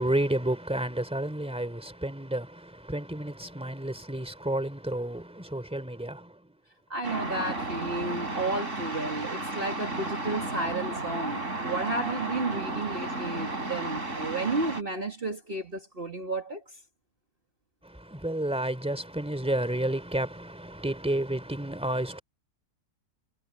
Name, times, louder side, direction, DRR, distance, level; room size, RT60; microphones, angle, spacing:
voice 1, 0.0-6.4 17.8-22.2, right 1 dB, 5° right, 3.0 m, -31 dB
voice 2, 6.9-16.6, right 2 dB, 40° right, 2.1 m, -32 dB
sound 1, 7.0-14.8, right 2 dB, 55° right, 5.3 m, -33 dB
omnidirectional pair, 1.5 m